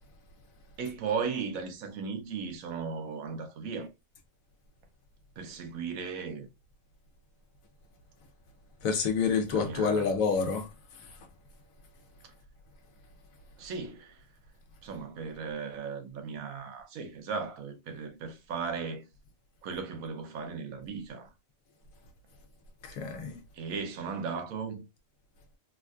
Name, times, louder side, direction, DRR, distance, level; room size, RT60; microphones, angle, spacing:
voice 1, 0.8-3.9 5.4-6.5 9.5-10.1 13.6-14.2 14.8-19.0 19.6-21.3 23.5-24.9, right 5 dB, 90° right, 1.2 m, -36 dB
voice 2, 8.8-10.7 22.8-23.4, left 5 dB, 85° left, 1.2 m, -28 dB
3.5 x 2.4 x 2.4 m
omnidirectional pair, 1.4 m